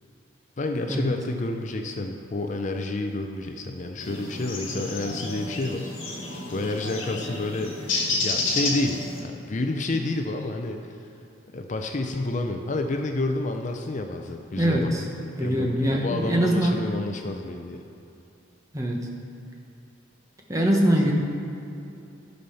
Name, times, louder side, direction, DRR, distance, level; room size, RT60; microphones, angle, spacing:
voice 1, 0.6-5.9 6.5-7.8 8.2-11.0 11.5-14.9 15.4-17.8, left 2 dB, 40° left, 4 dB, 0.5 m, -29 dB
sound 1, 4.0-9.2, left 2 dB, 70° left, 1.7 m, -30 dB
voice 2, 14.6-15.1 15.4-16.8 18.7-19.1 20.5-21.1, equal, 15° right, 0 dB, 1.0 m, -23 dB
12.0 x 5.5 x 5.7 m, 2.7 s
head